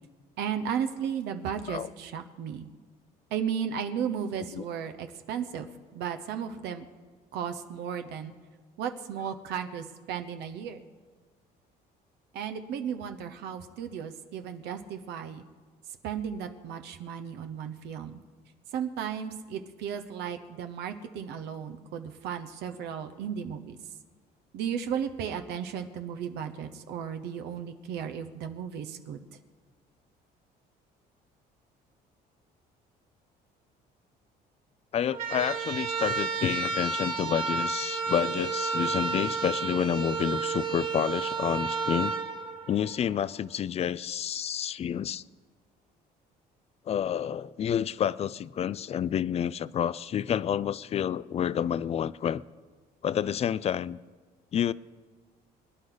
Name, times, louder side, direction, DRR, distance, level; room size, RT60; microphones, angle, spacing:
voice 1, 0.4-2.7 3.3-6.8 7.3-8.3 8.8-10.8 12.3-15.4 16.0-18.2 18.7-23.8 24.5-29.2, right 8 dB, 80° right, 1.0 m, -35 dB
voice 2, 34.9-42.1 42.7-45.2 46.9-52.4 53.0-54.0 54.5-54.7, left 9 dB, 40° left, 0.4 m, -29 dB
sound 1, 35.1-43.2, right 5 dB, 55° right, 3.2 m, -31 dB
24.5 x 10.0 x 4.0 m
cardioid pair, 110°, 17 cm